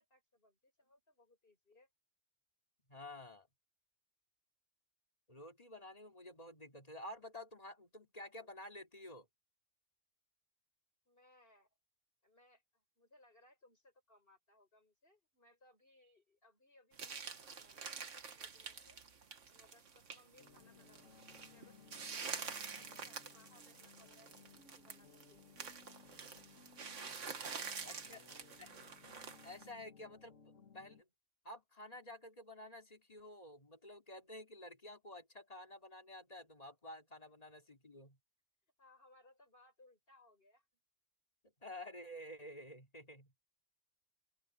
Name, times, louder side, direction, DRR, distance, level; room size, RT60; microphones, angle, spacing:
voice 1, 0.0-1.9 11.1-11.8 12.2-19.0 19.5-22.4 22.7-24.3 24.7-25.7 27.3-28.6 37.2-37.5 38.8-40.7, left 1 dB, 45° left, 7.0 m, -68 dB
voice 2, 2.9-3.5 5.3-9.3 27.8-28.2 28.6-28.7 29.4-31.1 31.4-38.2 41.6-43.3, left 1 dB, 30° left, 2.8 m, -51 dB
sound 1, 16.9-29.7, right 5 dB, 65° right, 1.8 m, -48 dB
sound 2, 20.4-31.0, left 5 dB, 70° left, 2.2 m, -62 dB
open air
omnidirectional pair, 1.4 m